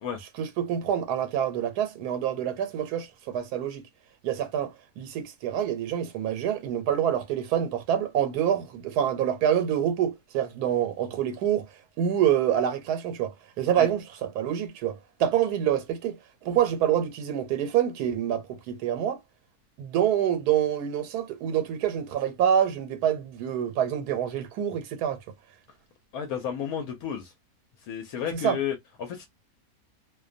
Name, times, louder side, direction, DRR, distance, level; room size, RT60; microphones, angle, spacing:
voice 1, 0.4-3.8 4.2-11.7 12.0-19.2 19.8-25.2 28.3-28.6, right 9 dB, 90° right, 1.2 m, -26 dB
voice 2, 26.1-27.3 27.8-29.3, left 8 dB, 75° left, 1.0 m, -32 dB
2.6 x 2.2 x 2.5 m
omnidirectional pair, 1.6 m